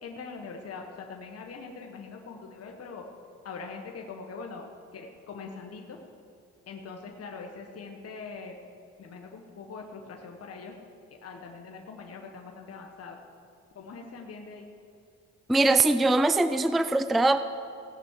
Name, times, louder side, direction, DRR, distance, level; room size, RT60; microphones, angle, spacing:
voice 1, 0.0-3.1 3.4-4.7 4.9-6.0 6.7-8.6 9.0-10.8 11.2-13.2 13.7-14.7, left 4 dB, 55° left, 1 dB, 1.4 m, -42 dB
voice 2, 15.5-17.4, right 2 dB, ahead, 11 dB, 0.4 m, -22 dB
17.0 x 6.2 x 8.2 m, 2.6 s
cardioid pair, 90°, 30 cm